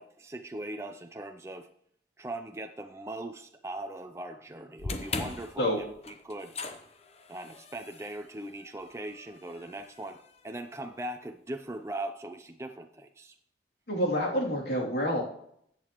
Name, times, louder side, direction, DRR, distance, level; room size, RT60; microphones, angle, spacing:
voice 1, 0.0-1.7 2.2-6.5 7.3-13.3, right 1 dB, 15° right, 5 dB, 0.4 m, -40 dB
sound 1, 4.8-11.1, left 3 dB, 35° left, 0.8 m, -41 dB
voice 2, 13.9-15.2, equal, 65° left, -2 dB, 2.9 m, -28 dB
14.0 x 8.4 x 3.0 m, 0.70 s
head